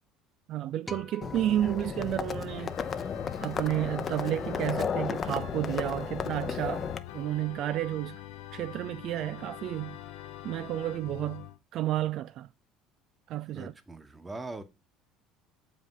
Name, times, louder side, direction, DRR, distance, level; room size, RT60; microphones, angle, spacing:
voice 1, 0.5-3.1 3.4-6.9 7.1-8.2 8.5-10.0 10.4-12.5 13.3-13.7, right 13 dB, 60° right, 0.3 m, -31 dB
sound 1, 0.9-3.3, left 2 dB, 10° left, 1.2 m, -48 dB
Livestock farm animals working animals, 1.2-7.0, left 6 dB, 40° left, 0.7 m, -34 dB
Organ, 2.5-11.6, left 12 dB, 75° left, 0.8 m, -44 dB
voice 2, 13.5-14.6, right 2 dB, 20° right, 1.4 m, -41 dB
7.3 x 5.1 x 3.8 m
hypercardioid pair, 70°, 0 cm